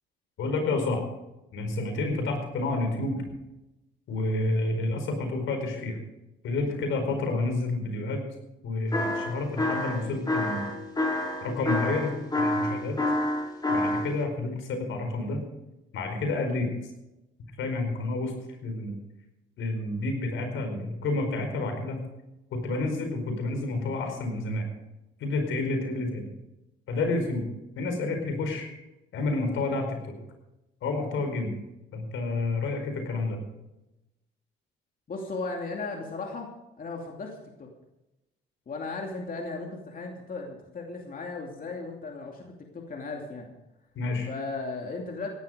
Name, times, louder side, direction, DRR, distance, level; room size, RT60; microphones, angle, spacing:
voice 1, 0.4-1.0 1.5-3.2 4.1-6.0 6.4-8.2 8.6-10.7 11.4-13.0 13.7-15.4 15.9-16.7 17.6-18.3 18.6-18.9 19.6-22.0 22.5-24.6 25.2-26.3 26.9-27.4 27.8-28.7 29.1-30.1 30.8-31.5 31.9-33.4 43.9-44.3, left 2 dB, 80° left, 5 dB, 4.7 m, -29 dB
sound 1, 8.9-14.1, left 1 dB, 20° left, 4.1 m, -27 dB
voice 2, 35.1-36.5 36.8-37.7 38.7-43.5 44.2-45.3, left 3 dB, 45° left, 1 dB, 2.7 m, -36 dB
16.5 x 12.0 x 5.1 m, 0.94 s
cardioid pair, 90°, 20 cm